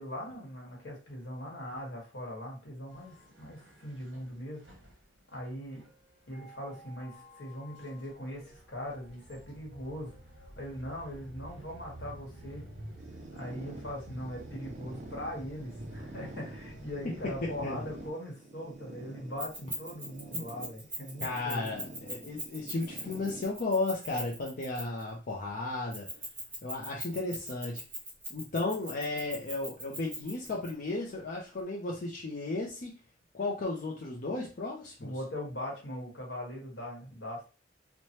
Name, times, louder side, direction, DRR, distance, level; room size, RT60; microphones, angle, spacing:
voice 1, 0.0-4.6 5.3-5.8 6.3-10.1 10.6-12.6 13.3-21.7 26.1-26.2 35.0-37.4, equal, 70° left, -1 dB, 1.2 m, -40 dB
sound 1, 2.9-18.1, right 1 dB, 75° right, 0.9 m, -49 dB
sound 2, 13.0-23.4, right 2 dB, 40° right, 0.4 m, -48 dB
Keys jangling, 19.4-25.1 25.9-30.7, right 1 dB, 10° right, 1.0 m, -41 dB
voice 2, 21.2-26.1 26.6-27.8 28.3-32.9 33.3-35.1, left 2 dB, 50° left, -3 dB, 0.5 m, -34 dB
3.1 x 2.1 x 2.8 m, 0.34 s
head